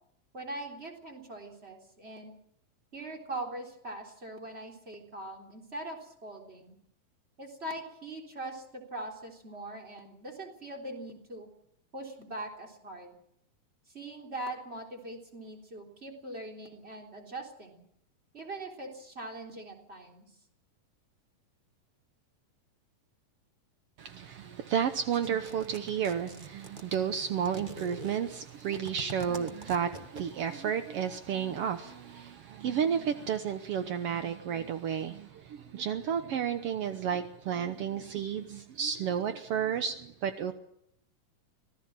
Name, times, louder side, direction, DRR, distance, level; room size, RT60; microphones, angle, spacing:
voice 1, 0.3-2.3 2.9-6.8 7.4-11.5 11.9-13.1 13.9-17.8 18.3-20.2, right 1 dB, 20° right, 2 dB, 3.5 m, -42 dB
voice 2, 24.0-40.5, right 8 dB, 70° right, 8 dB, 1.4 m, -32 dB
sound 1, 25.1-30.6, right 3 dB, 50° right, 0.5 m, -45 dB
25.5 x 18.0 x 7.6 m, 0.72 s
omnidirectional pair, 4.0 m